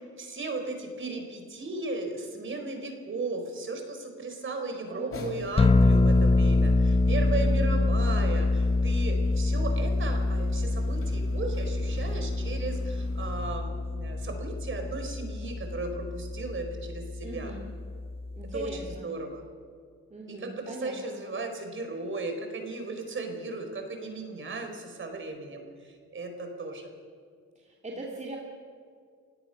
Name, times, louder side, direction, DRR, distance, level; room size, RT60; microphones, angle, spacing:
voice 1, 0.2-17.5 18.5-19.4 20.3-26.9, right 3 dB, 40° right, 4 dB, 4.7 m, -36 dB
voice 2, 4.8-5.4 7.4-7.6 17.2-17.7 18.3-19.1 20.1-21.2 27.5-28.4, right 1 dB, 25° right, -2 dB, 2.8 m, -40 dB
sound 1, 5.1-13.5, left 2 dB, 45° left, 3.5 m, -43 dB
sound 2, 5.6-19.0, left 2 dB, 20° left, 0.8 m, -26 dB
30.0 x 17.0 x 6.0 m, 2.1 s
cardioid pair, 90°, 30 cm